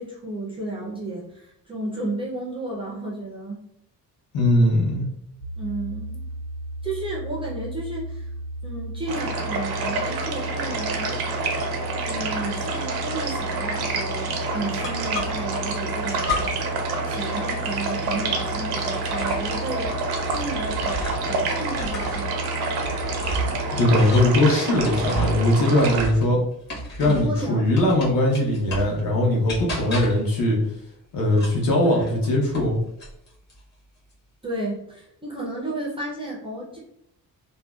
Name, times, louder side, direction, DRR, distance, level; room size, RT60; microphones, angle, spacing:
voice 1, 0.0-3.6 5.6-6.2 6.8-8.3 8.6-11.2 12.1-16.4 17.1-22.4 27.0-27.8 34.4-36.8, right 2 dB, 15° right, -4 dB, 0.4 m, -33 dB
voice 2, 4.3-5.0 23.7-26.4 27.0-30.6 31.1-32.8, left 1 dB, 65° left, -2 dB, 0.9 m, -20 dB
sound 1, 5.4-24.1, right 1 dB, 85° left, 1.3 m, -34 dB
sound 2, 9.1-26.1, right 3 dB, 90° right, 0.6 m, -28 dB
sound 3, 14.8-15.6 16.2-16.8 17.1-21.4 21.7-27.4 27.8-29.0 29.5-30.3 31.3-32.7 33.0-33.6, equal, 30° left, 0.8 m, -33 dB
2.6 x 2.1 x 2.2 m, 0.76 s
cardioid pair, 155°, 37 cm